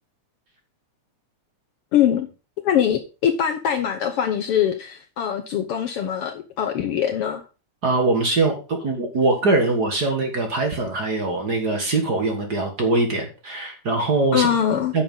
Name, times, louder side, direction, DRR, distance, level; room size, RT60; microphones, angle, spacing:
voice 1, 1.9-2.3 2.6-7.4 14.3-14.9, left 9 dB, 65° left, 6 dB, 1.5 m, -22 dB
voice 2, 7.8-14.5 14.9-15.0, right 2 dB, 40° right, 4 dB, 1.9 m, -22 dB
9.6 x 6.7 x 5.4 m, 0.32 s
omnidirectional pair, 3.3 m